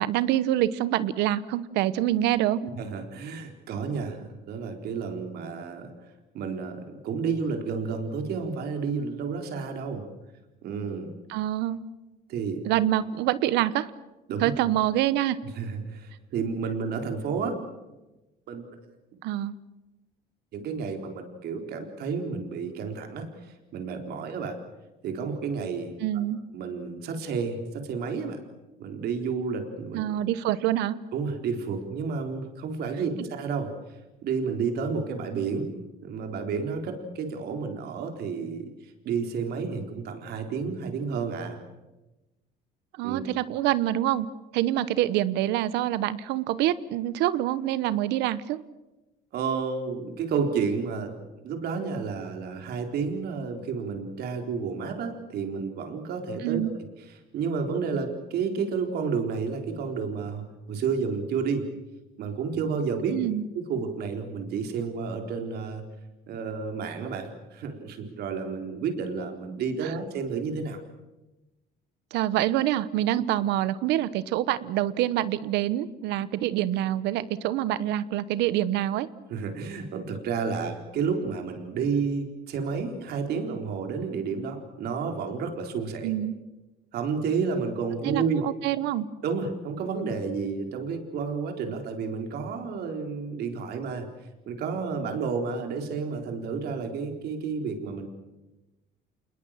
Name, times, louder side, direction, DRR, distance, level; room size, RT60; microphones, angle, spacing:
voice 1, 0.0-2.6 11.3-11.8 12.6-13.9 14.4-15.4 19.2-19.6 26.0-26.4 29.9-30.9 43.0-44.3 44.5-48.6 56.4-56.7 63.1-63.5 69.8-69.9 72.1-79.1 86.0-86.4 88.0-89.1, right 13 dB, 90° right, 16 dB, 1.0 m, -26 dB
voice 2, 2.8-5.9 6.3-10.0 10.6-11.1 12.3-12.6 14.3-14.5 15.6-17.6 18.5-18.6 20.5-24.6 25.0-25.9 26.5-28.4 28.8-30.2 31.1-33.7 34.2-35.7 36.0-41.6 43.0-43.2 49.3-51.1 51.4-56.8 57.1-61.7 62.2-63.2 63.5-65.8 66.3-70.8 79.3-86.1 86.9-88.4 89.2-94.1 94.5-98.1, right 5 dB, 70° right, 4 dB, 4.1 m, -31 dB
27.5 x 21.0 x 7.5 m, 1.1 s
cardioid pair, 110°, 17 cm